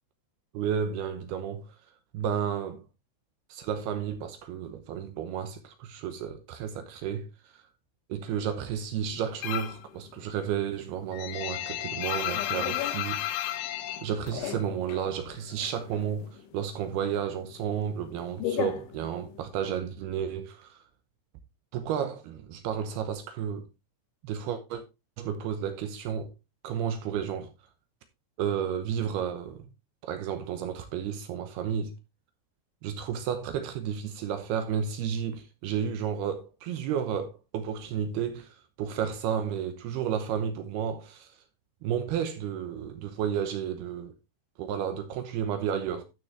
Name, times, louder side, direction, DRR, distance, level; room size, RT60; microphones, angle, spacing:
voice 1, 0.5-1.8 2.1-2.8 3.5-7.3 7.5-7.6 8.1-13.6 14.0-20.8 21.7-23.7 24.2-24.8 25.2-26.3 26.6-27.5 28.4-29.7 30.0-31.9 32.8-41.3 41.8-44.1 44.6-46.0, right 8 dB, 75° right, 2.4 m, -32 dB
sound 1, 9.4-9.9 10.2-15.1 15.3-16.4 16.7-19.5, left 12 dB, 80° left, 3.2 m, -33 dB
12.0 x 6.2 x 3.2 m
omnidirectional pair, 5.6 m